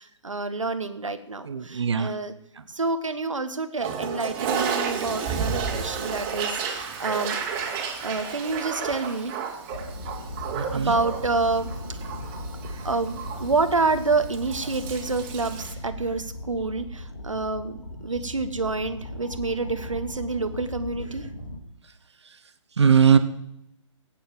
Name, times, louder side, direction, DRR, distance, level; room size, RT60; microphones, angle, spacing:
voice 1, 0.0-2.3 2.7-7.4 8.0-9.3 10.7-12.0 12.6-21.3, right 3 dB, 80° right, 9 dB, 1.4 m, -28 dB
voice 2, 1.5-2.1 10.5-10.9 22.8-23.2, right 7 dB, 60° right, 11 dB, 1.5 m, -19 dB
Toilet flush, 3.8-15.7, right 6 dB, 25° right, 2.5 m, -32 dB
sound 1, 9.7-21.6, left 1 dB, 75° left, 3.4 m, -37 dB
15.5 x 9.2 x 7.6 m, 0.79 s
figure-of-eight pair, 135°, 16 cm